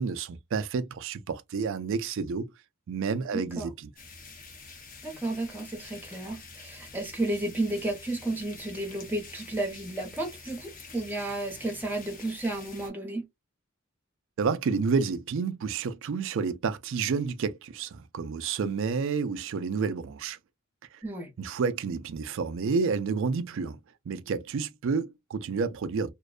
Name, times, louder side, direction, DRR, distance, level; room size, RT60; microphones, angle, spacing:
voice 1, 0.0-2.5 2.9-3.9 14.4-20.4 21.4-23.8 24.1-26.1, right 5 dB, 65° right, 0.4 m, -30 dB
voice 2, 3.3-3.7 5.0-13.2 21.0-21.3, right 2 dB, 10° right, 0.8 m, -32 dB
sound 1, 4.0-12.9, left 4 dB, 40° left, 0.7 m, -47 dB
2.5 x 2.1 x 2.3 m
head